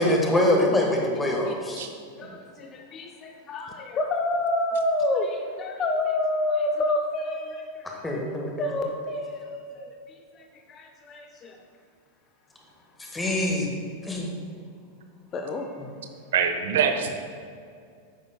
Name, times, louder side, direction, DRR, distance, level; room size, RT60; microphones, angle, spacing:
voice 1, 0.0-1.9 8.0-8.5 13.1-13.8 14.0-14.3, left 1 dB, 10° left, 0 dB, 1.6 m, -24 dB
voice 2, 2.2-7.9 8.6-11.6 15.3-15.8, left 2 dB, 30° left, 4 dB, 0.6 m, -29 dB
voice 3, 16.3-17.1, right 7 dB, 60° right, 6 dB, 0.8 m, -23 dB
11.0 x 9.0 x 2.3 m, 2.3 s
figure-of-eight pair, 90°, 0 cm